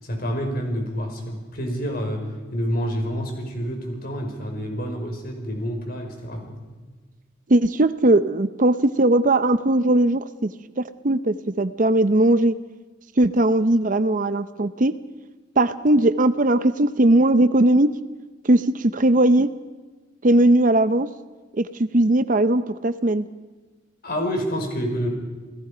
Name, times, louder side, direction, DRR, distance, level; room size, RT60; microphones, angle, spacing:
voice 1, 0.0-6.6 24.0-25.1, equal, 50° left, 2 dB, 5.1 m, -28 dB
voice 2, 7.5-10.5 10.8-12.5 13.2-14.9 15.6-17.9 18.4-19.5 20.2-21.1 21.5-23.3, right 1 dB, 45° right, 12 dB, 0.7 m, -19 dB
29.5 x 18.0 x 5.1 m, 1.3 s
head